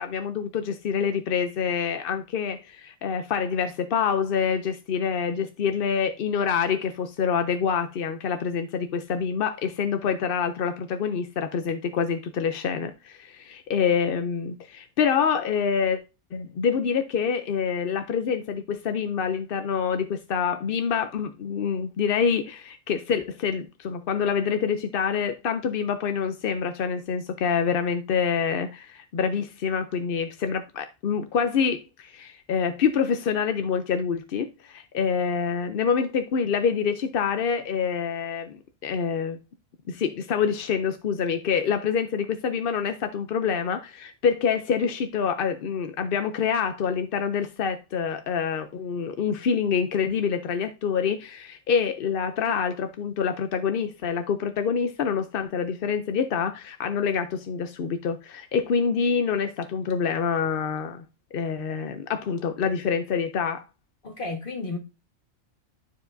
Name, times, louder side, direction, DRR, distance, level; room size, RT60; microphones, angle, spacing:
voice 1, 0.0-16.0 16.3-39.4 39.9-61.0 61.3-63.6, left 6 dB, 55° left, 0.6 m, -26 dB
voice 2, 64.0-64.8, left 3 dB, 40° left, 1.6 m, -32 dB
12.0 x 4.7 x 2.6 m
omnidirectional pair, 1.4 m